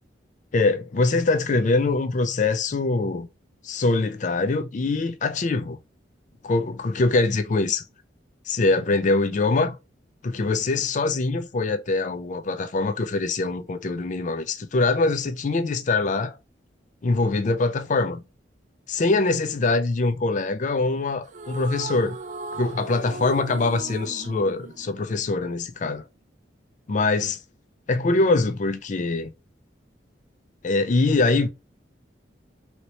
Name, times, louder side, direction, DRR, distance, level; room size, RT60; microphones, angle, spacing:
voice 1, 0.5-3.3 3.6-5.8 6.4-7.8 8.5-9.8 10.2-16.4 17.0-18.2 18.9-22.2 22.5-26.0 26.9-27.4 27.9-29.3 30.6-31.5, left 3 dB, 45° left, 0.4 m, -23 dB
sound 1, 21.2-25.7, right 3 dB, 45° right, 0.3 m, -37 dB
3.0 x 3.0 x 2.7 m
head